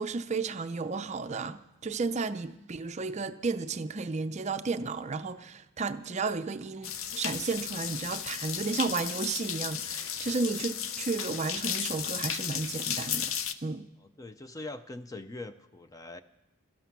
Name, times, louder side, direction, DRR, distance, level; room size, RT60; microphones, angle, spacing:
voice 1, 0.0-13.3 13.6-13.9, right 4 dB, 35° right, 0.5 m, -33 dB
sound 1, 6.8-13.5, left 8 dB, 80° left, 0.7 m, -34 dB
voice 2, 14.0-16.2, left 2 dB, 15° left, 0.5 m, -42 dB
17.0 x 13.0 x 5.9 m
head